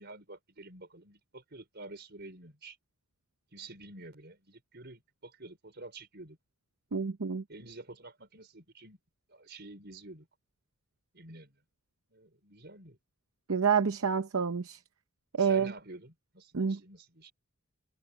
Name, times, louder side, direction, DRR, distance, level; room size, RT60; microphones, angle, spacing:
voice 1, 0.0-2.8 3.5-6.4 7.5-9.0 9.3-10.3 11.1-11.6 12.1-13.0 15.4-17.3, right 2 dB, 50° right, 5.1 m, -49 dB
voice 2, 6.9-7.4 13.5-14.8 15.4-15.7 16.5-16.8, right 6 dB, 70° right, 0.7 m, -28 dB
head